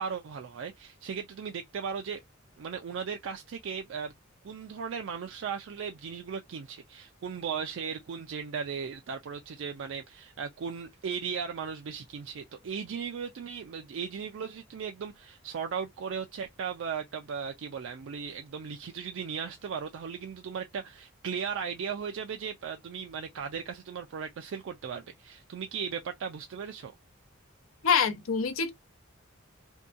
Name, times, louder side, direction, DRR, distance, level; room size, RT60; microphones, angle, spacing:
voice 1, 0.0-2.2 2.6-4.1 4.4-26.9, right 6 dB, 65° right, 0.4 m, -37 dB
voice 2, 27.8-28.7, left 6 dB, 90° left, 0.6 m, -25 dB
2.7 x 2.2 x 2.4 m
head